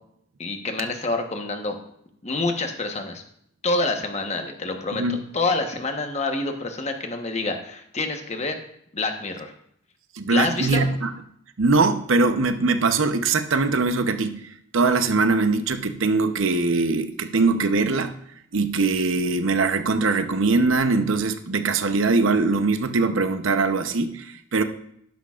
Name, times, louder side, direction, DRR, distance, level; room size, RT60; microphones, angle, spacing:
voice 1, 0.4-1.8 2.2-3.2 3.6-5.0 5.3-8.6 8.9-9.5 10.3-10.9, left 3 dB, 35° left, 5 dB, 1.1 m, -27 dB
voice 2, 10.2-11.1 11.6-14.4 14.7-18.1 18.5-24.6, right 3 dB, 75° right, 9 dB, 0.8 m, -22 dB
12.5 x 10.5 x 2.4 m, 0.70 s
head